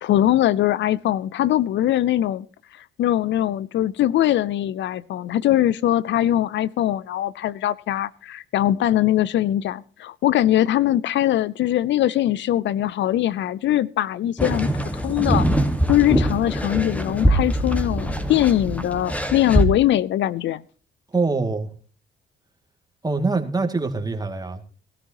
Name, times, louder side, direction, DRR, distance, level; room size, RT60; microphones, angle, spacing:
voice 1, 0.0-2.5 3.0-14.7 15.0-15.5 15.9-20.6, left 13 dB, 70° left, 0.5 m, -21 dB
sound 1, 14.4-19.7, equal, 5° left, 1.6 m, -22 dB
voice 2, 21.1-21.7 23.0-24.6, right 3 dB, 20° right, 2.2 m, -24 dB
18.0 x 13.0 x 2.9 m
cardioid pair, 90°, 20 cm